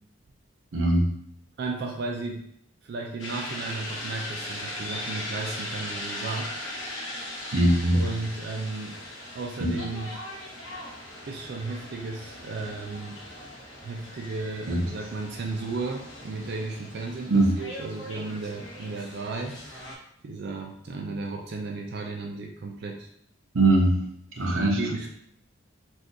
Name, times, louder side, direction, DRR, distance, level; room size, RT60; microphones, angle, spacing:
voice 1, 0.7-1.1 7.5-8.0 9.6-9.8 14.7-14.8 17.3-17.5 23.5-24.0 24.4-24.8, right 1 dB, 75° right, 0 dB, 0.7 m, -21 dB
voice 2, 1.6-2.4 2.8-6.5 7.9-9.0 9.3-10.2 11.3-13.2 13.8-23.1 24.4-25.1, right 3 dB, 50° right, 2 dB, 0.3 m, -34 dB
sound 1, 3.2-20.0, left 1 dB, 65° left, 0.8 m, -39 dB
3.6 x 2.4 x 2.6 m, 0.69 s
head